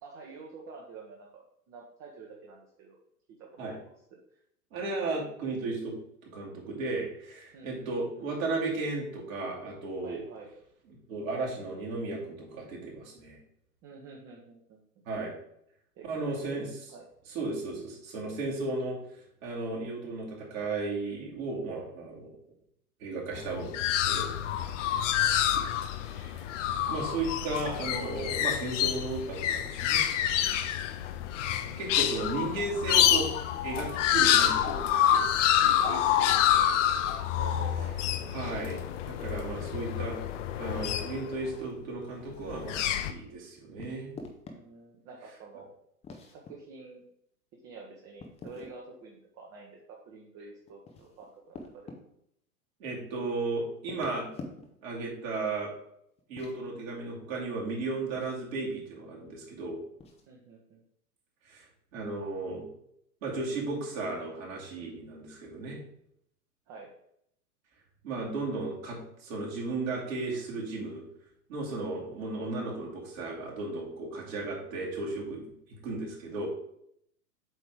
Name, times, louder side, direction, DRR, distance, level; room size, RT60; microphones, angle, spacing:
voice 1, 0.0-3.0 3.4-3.8 4.3-4.4 7.5-8.0 10.0-10.5 13.8-15.0 15.9-16.6 16.9-17.1 25.8-26.5 32.0-32.1 35.8-36.2 37.3-38.3 44.5-45.7 46.3-47.0 47.6-49.8 50.1-51.8 60.3-60.8 66.7-66.9, right 4 dB, 35° right, -1 dB, 1.2 m, -49 dB
voice 2, 4.7-5.9 6.3-10.2 11.1-13.4 15.1-15.3 16.1-16.7 17.3-19.0 19.4-22.4 23.0-24.3 26.0-26.4 26.9-30.0 31.8-33.3 33.6-35.3 35.6-36.7 38.3-40.2 40.6-44.2 52.8-54.3 54.8-55.7 56.3-59.8 61.5-61.6 61.9-62.7 63.2-65.8 68.0-71.0 71.5-75.4 75.8-76.5, right 3 dB, 60° right, -3 dB, 2.7 m, -35 dB
sound 1, 23.3-41.5 42.4-43.1, left 10 dB, 55° left, 0.7 m, -27 dB
sound 2, 43.8-44.6 46.0-46.5 48.2-48.8 50.7-52.0 53.8-54.9 56.2-56.6 58.1-58.4 60.0-60.3, left 3 dB, 15° left, 0.7 m, -45 dB
7.8 x 3.2 x 4.8 m, 0.73 s
hypercardioid pair, 110°, 46 cm